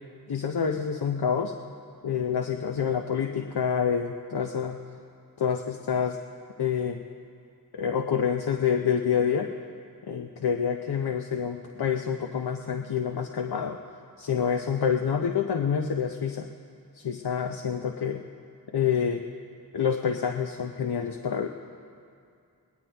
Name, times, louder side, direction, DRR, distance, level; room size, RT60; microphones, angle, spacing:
voice 1, 0.3-1.5 2.0-4.8 5.4-6.2 6.6-7.0 7.7-9.5 10.1-13.8 14.2-16.5 16.9-18.2 18.7-19.2 19.7-21.5, left 7 dB, 75° left, 4 dB, 0.7 m, -27 dB
19.5 x 18.0 x 3.4 m, 2.4 s
wide cardioid pair, 60°, 39 cm